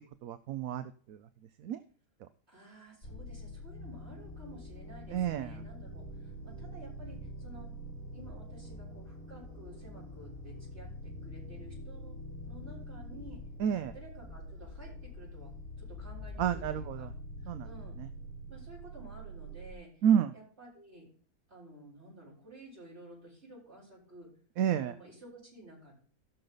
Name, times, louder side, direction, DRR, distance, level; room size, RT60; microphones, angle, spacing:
voice 1, 0.2-1.2 1.6-1.8 2.2-2.3 5.1-5.6 13.6-13.9 16.4-17.1 17.5-17.7 20.0-20.3 24.6-24.9, right 9 dB, 70° right, 11 dB, 1.0 m, -30 dB
voice 2, 2.5-7.7 8.1-12.2 12.4-13.4 13.9-17.1 17.4-18.0 18.5-20.0 20.3-21.1 21.5-24.3 24.8-25.9, right 1 dB, 45° right, -5 dB, 6.9 m, -52 dB
sound 1, 3.0-19.7, left 1 dB, 55° left, 3.6 m, -45 dB
16.5 x 6.6 x 3.9 m, 0.42 s
omnidirectional pair, 1.7 m